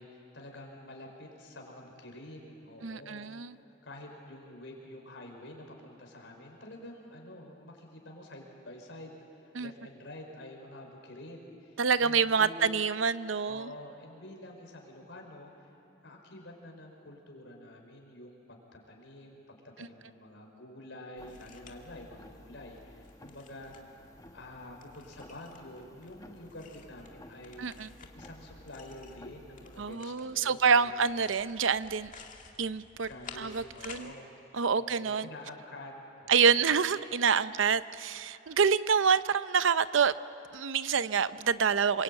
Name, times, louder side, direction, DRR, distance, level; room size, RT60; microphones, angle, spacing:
voice 1, 0.0-12.8 13.5-23.9 24.3-31.1 33.0-34.3 34.7-35.9 36.2-36.7, left 1 dB, 65° left, 1 dB, 5.2 m, -48 dB
voice 2, 2.8-3.5 9.6-9.7 11.8-13.7 27.6-27.9 29.8-32.1 32.6-33.1 33.4-34.1 34.5-35.3 36.3-40.1 40.5-42.0, right 6 dB, 80° right, 14 dB, 0.7 m, -27 dB
sound 1, 21.2-30.0, left 1 dB, 20° left, 1.3 m, -54 dB
sound 2, 21.3-34.1, left 5 dB, 40° left, 2.1 m, -54 dB
27.5 x 23.5 x 9.1 m, 2.7 s
head